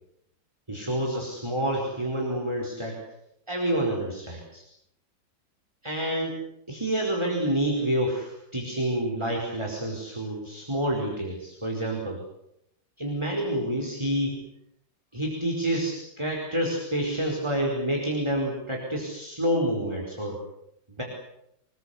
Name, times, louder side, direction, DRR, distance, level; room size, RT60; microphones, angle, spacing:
voice 1, 0.7-3.0 3.5-4.6 5.8-6.3 6.7-12.2 13.0-14.4 15.1-20.4 21.0-21.1, right 1 dB, 15° right, 0 dB, 4.6 m, -28 dB
27.5 x 20.5 x 8.4 m, 0.79 s
omnidirectional pair, 2.0 m